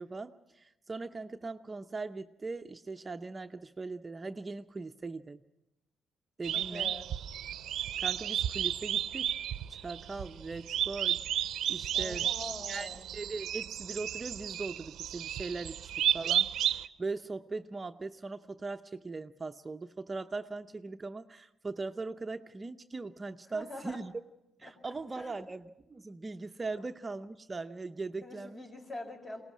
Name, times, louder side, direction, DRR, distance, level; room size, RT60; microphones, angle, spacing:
voice 1, 0.0-5.4 6.4-6.9 8.0-9.3 9.7-11.2 11.7-12.3 12.7-24.2 24.6-28.6, right 3 dB, 25° right, 8 dB, 0.7 m, -40 dB
sound 1, 6.4-16.9, right 11 dB, 75° right, 0.7 m, -33 dB
voice 2, 6.5-7.0 11.9-13.1 23.5-24.0 24.6-25.3 28.2-29.4, left 1 dB, 40° left, 3 dB, 4.8 m, -44 dB
23.0 x 18.5 x 6.2 m, 0.93 s
cardioid pair, 90°, 0 cm